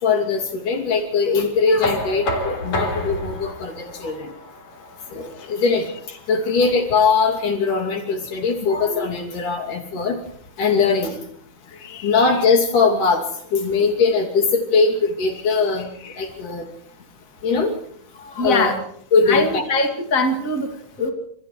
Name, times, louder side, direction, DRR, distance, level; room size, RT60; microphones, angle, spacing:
voice 1, 0.0-4.3 5.1-10.2 10.6-11.2 12.0-13.2 13.5-15.9 16.2-16.7 17.4-17.7 18.4-18.8 19.1-19.6, left 4 dB, 80° left, 1 dB, 4.4 m, -20 dB
Knock, 1.8-7.6, left 1 dB, 65° left, 4.9 m, -30 dB
voice 2, 11.7-12.2 16.0-16.5 18.2-18.8 19.3-21.1, left 2 dB, 25° left, 3 dB, 2.7 m, -24 dB
29.5 x 27.5 x 3.3 m, 0.67 s
omnidirectional pair, 3.6 m